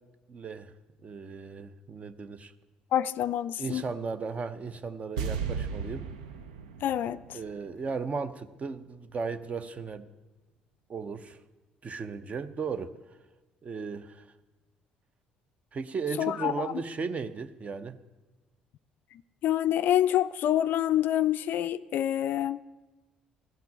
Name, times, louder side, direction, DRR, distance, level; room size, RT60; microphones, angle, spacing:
voice 1, 0.3-0.7 1.0-2.5 3.6-6.1 7.3-10.1 10.9-11.4 11.8-13.0 13.6-14.3 15.7-18.0, right 5 dB, 35° right, 0.7 m, -36 dB
voice 2, 2.9-3.8 6.8-7.4 16.2-16.7 19.4-22.6, left 11 dB, 55° left, 0.3 m, -27 dB
sound 1, 5.2-8.4 8.6-8.7, right 6 dB, 75° right, 0.6 m, -36 dB
15.0 x 5.9 x 8.6 m
figure-of-eight pair, 50°, 4 cm